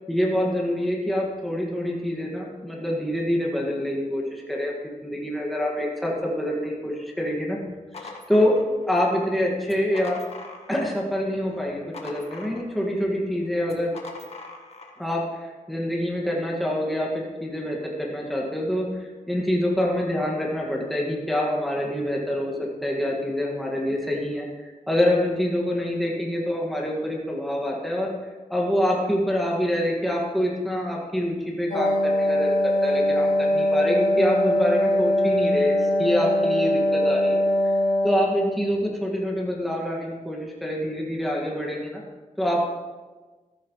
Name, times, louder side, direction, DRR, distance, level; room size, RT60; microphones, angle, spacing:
voice 1, 0.1-7.6 8.0-10.2 10.7-13.9 15.0-15.2 15.7-24.4 24.9-28.1 28.5-37.4 38.0-42.0 42.4-42.7, left 1 dB, ahead, -3 dB, 1.9 m, -26 dB
sound 1, 7.6-9.1 9.6-11.1 11.4-13.0 13.6-15.0, left 3 dB, 50° left, 1.6 m, -42 dB
Wind instrument woodwind instrument, 31.7-38.5, left 1 dB, 75° left, 2.2 m, -22 dB
14.5 x 13.0 x 3.2 m, 1.3 s
wide cardioid pair, 150°, 14 cm